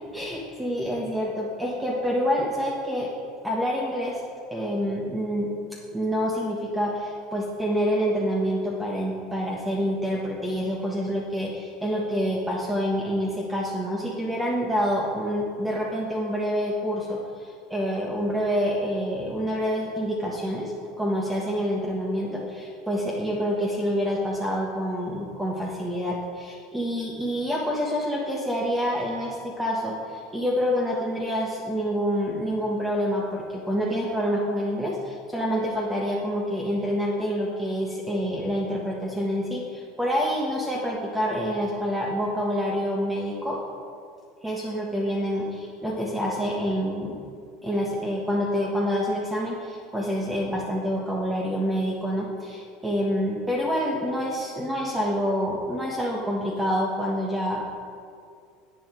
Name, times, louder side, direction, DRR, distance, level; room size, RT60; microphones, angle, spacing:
voice 1, 0.1-3.1 3.4-4.2 4.5-5.5 5.9-43.6 44.4-47.2 47.6-57.7, equal, 10° right, -2 dB, 1.3 m, -27 dB
10.0 x 8.3 x 4.5 m, 2.3 s
hypercardioid pair, 85°, 0 cm